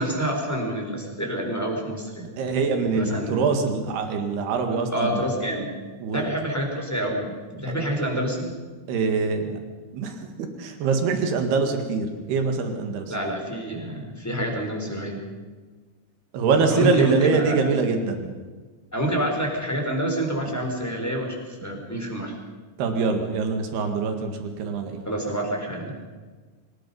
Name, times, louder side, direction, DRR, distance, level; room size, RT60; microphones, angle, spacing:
voice 1, 0.0-2.3 2.9-3.4 4.9-5.7 6.1-8.5 13.1-15.2 16.7-17.6 18.9-22.3 25.1-25.9, right 1 dB, 5° left, 0 dB, 3.6 m, -27 dB
voice 2, 2.4-5.2 6.0-6.3 7.7-7.9 8.9-9.6 9.9-13.1 16.3-18.3 22.8-25.0, right 4 dB, 90° right, 5 dB, 4.0 m, -24 dB
24.5 x 19.5 x 5.5 m, 1.4 s
omnidirectional pair, 4.5 m